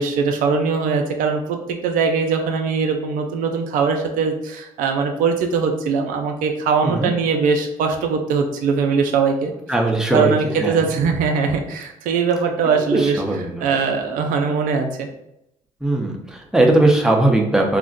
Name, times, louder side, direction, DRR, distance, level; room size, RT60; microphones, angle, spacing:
voice 1, 0.0-9.5 10.1-13.2 13.6-15.1, right 5 dB, 70° right, 4 dB, 0.4 m, -21 dB
voice 2, 9.7-10.8 12.9-13.6 15.8-17.8, right 2 dB, 5° right, 0 dB, 0.7 m, -19 dB
2.5 x 2.1 x 3.7 m, 0.83 s
supercardioid pair, 65°, 14 cm